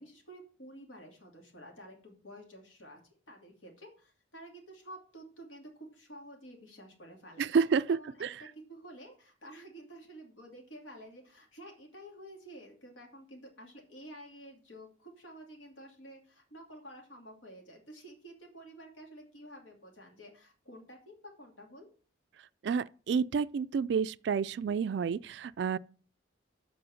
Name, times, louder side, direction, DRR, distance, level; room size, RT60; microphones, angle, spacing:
voice 1, 0.0-3.0 3.3-7.4 7.9-21.9, right 1 dB, 85° left, 2.6 m, -51 dB
voice 2, 7.4-8.4 22.6-25.8, right 6 dB, 60° right, 0.3 m, -30 dB
7.8 x 5.2 x 6.3 m
head